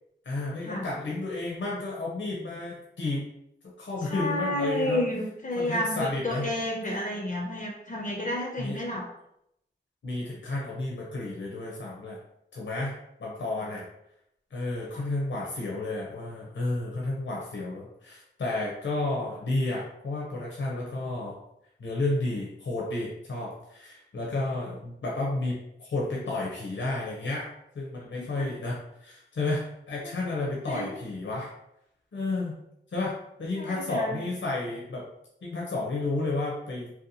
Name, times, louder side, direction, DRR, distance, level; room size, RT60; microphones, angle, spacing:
voice 1, 0.2-3.3 3.8-5.0 5.6-6.5 8.6-8.8 10.0-12.2 12.5-12.9 13.2-13.8 14.5-21.4 21.8-27.5 27.7-31.5 32.1-32.6 32.9-33.1 33.4-35.1 35.4-36.9, left 2 dB, 85° left, -4 dB, 0.6 m, -31 dB
voice 2, 4.0-9.0 14.9-15.0 28.2-28.5 30.0-30.1 30.7-30.9 33.5-34.2, left 1 dB, 40° left, -1 dB, 0.5 m, -31 dB
2.7 x 2.2 x 2.6 m, 0.80 s
cardioid pair, 45°, 19 cm